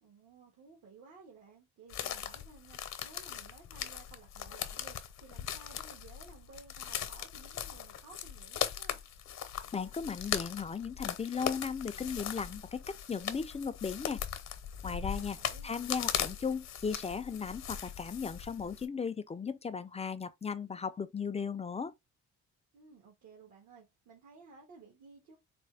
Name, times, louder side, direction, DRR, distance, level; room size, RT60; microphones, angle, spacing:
voice 1, 0.0-9.0 15.0-16.2 22.7-25.4, right 4 dB, 70° right, 1.6 m, -56 dB
sound 1, 1.9-18.8, left 9 dB, 65° left, 0.8 m, -39 dB
voice 2, 9.7-14.2 14.8-15.4 15.6-21.9, left 6 dB, 20° left, 0.4 m, -36 dB
4.3 x 2.2 x 3.3 m
cardioid pair, 90°, 30 cm